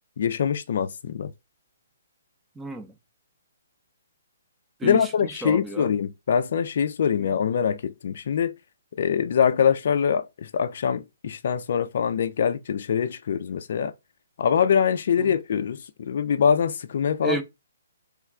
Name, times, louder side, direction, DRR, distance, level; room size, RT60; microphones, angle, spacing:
voice 1, 0.2-1.3 4.8-8.5 9.0-13.9 14.4-17.4, left 7 dB, 60° left, 0.3 m, -24 dB
voice 2, 2.6-3.0 4.8-5.9 7.2-7.3 15.2-15.3 17.2-17.4, right 2 dB, 10° right, 0.5 m, -32 dB
3.1 x 2.2 x 3.6 m
hypercardioid pair, 140°, 0 cm